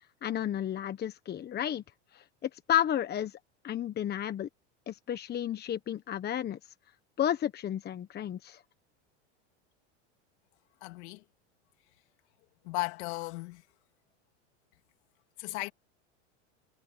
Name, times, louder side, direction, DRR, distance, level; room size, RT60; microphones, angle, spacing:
voice 1, 0.2-1.8 2.1-3.4 3.6-4.5 4.9-6.6 7.2-8.6, left 10 dB, 30° left, 1.3 m, -32 dB
voice 2, 10.8-11.2 12.6-13.6 15.4-15.7, left 24 dB, 65° left, 3.1 m, -36 dB
supercardioid pair, 115°, 35 cm